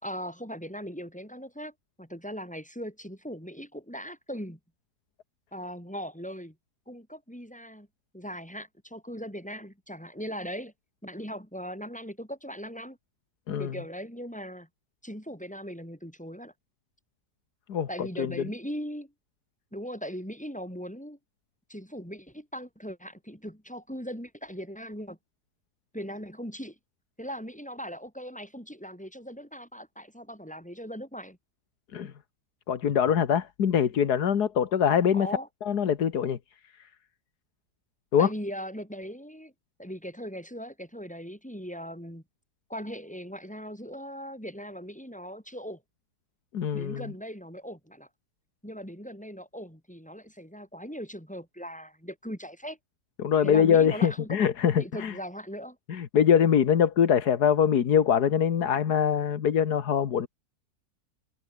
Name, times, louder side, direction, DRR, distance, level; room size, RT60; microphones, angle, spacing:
voice 1, 0.0-1.7 2.0-4.6 5.5-6.5 6.9-7.9 8.1-10.7 11.0-13.0 13.6-14.7 15.0-16.5 17.9-19.1 19.7-21.2 21.7-25.2 25.9-26.8 27.2-31.4 35.1-35.5 38.2-39.5 39.8-42.2 42.7-45.8 46.7-48.1 48.6-52.8 53.4-54.4 54.8-55.8, equal, 5° left, 6.7 m, -39 dB
voice 2, 17.7-18.3 31.9-32.1 32.7-35.3 35.6-36.4 38.1-38.3 46.5-47.1 53.2-55.1 55.9-60.3, left 8 dB, 90° left, 1.9 m, -23 dB
omnidirectional pair, 1.6 m